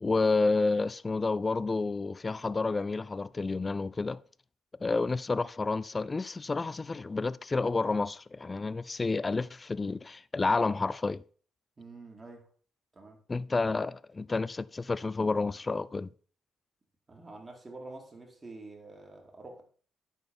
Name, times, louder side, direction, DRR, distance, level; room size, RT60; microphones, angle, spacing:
voice 1, 0.0-4.2 4.8-11.2 13.3-16.1, left 3 dB, 25° left, 0.4 m, -30 dB
voice 2, 11.8-12.5 12.9-13.2 17.1-19.6, right 2 dB, 30° right, 2.7 m, -47 dB
11.0 x 4.2 x 5.5 m
cardioid pair, 90°, 0 cm